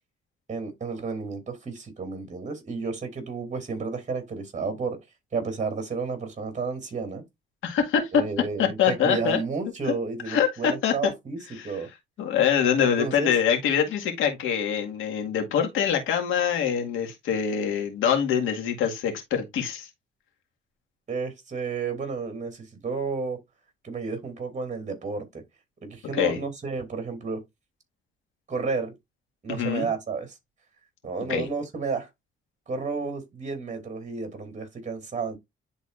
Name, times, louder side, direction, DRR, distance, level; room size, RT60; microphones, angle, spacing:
voice 1, 0.5-5.0 5.3-7.3 8.1-11.9 12.8-13.3 21.1-23.4 23.8-25.4 25.8-27.4 28.5-29.0 29.4-30.4 31.0-32.1 32.7-35.4, right 4 dB, 35° right, 2.8 m, -31 dB
voice 2, 7.6-8.1 8.6-9.4 9.8-9.9 10.3-10.9 11.6-11.7 12.2-19.9 26.2-26.4 29.5-29.9 31.3-31.5, left 8 dB, 85° left, 1.9 m, -24 dB
10.5 x 4.1 x 2.5 m
cardioid pair, 90°, 20 cm